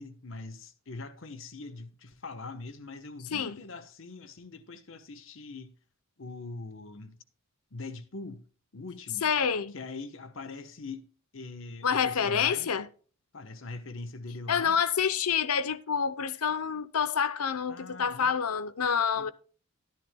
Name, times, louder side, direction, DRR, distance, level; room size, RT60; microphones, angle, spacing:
voice 1, 0.0-5.8 6.2-7.2 7.7-8.4 8.7-9.3 9.7-11.1 11.3-12.7 13.3-14.8 17.7-18.3 19.2-19.3, left 3 dB, 60° left, 1.1 m, -42 dB
voice 2, 9.2-9.7 11.8-12.9 14.5-19.3, left 7 dB, 85° left, 0.7 m, -27 dB
13.0 x 11.0 x 2.2 m
head